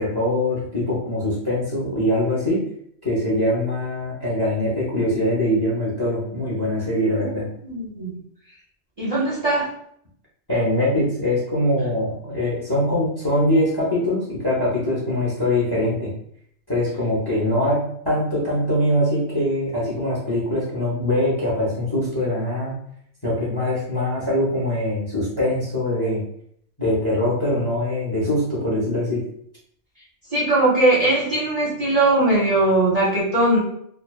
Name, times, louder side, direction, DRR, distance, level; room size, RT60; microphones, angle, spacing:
voice 1, 0.0-2.6 3.0-7.4 10.5-16.1 16.7-22.7 23.2-26.2 26.8-29.2, left 1 dB, 25° left, -5 dB, 0.6 m, -22 dB
voice 2, 7.6-8.2 9.0-9.7 30.3-33.6, right 2 dB, 40° right, -8 dB, 0.7 m, -20 dB
2.5 x 2.2 x 2.3 m, 0.68 s
omnidirectional pair, 1.2 m